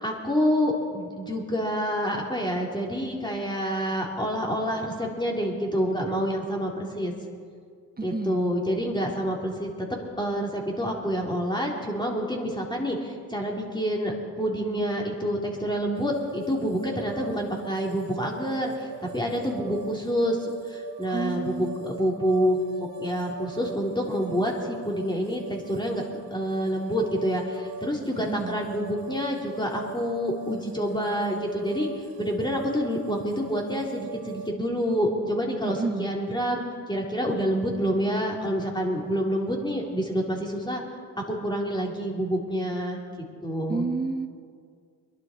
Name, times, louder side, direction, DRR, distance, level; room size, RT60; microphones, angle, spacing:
voice 1, 0.0-7.1 8.0-9.7 10.2-14.1 14.4-26.0 26.3-31.9 32.2-36.6 36.9-40.8 41.3-43.0 43.4-43.9, equal, 10° left, -1 dB, 4.0 m, -27 dB
voice 2, 8.0-8.5 21.1-21.8 28.3-28.6 35.6-36.1 43.7-44.3, right 3 dB, 25° right, 6 dB, 1.7 m, -30 dB
sound 1, 15.9-34.5, right 5 dB, 90° right, 2.1 m, -41 dB
22.5 x 11.5 x 4.7 m, 2.1 s
supercardioid pair, 55°, 39 cm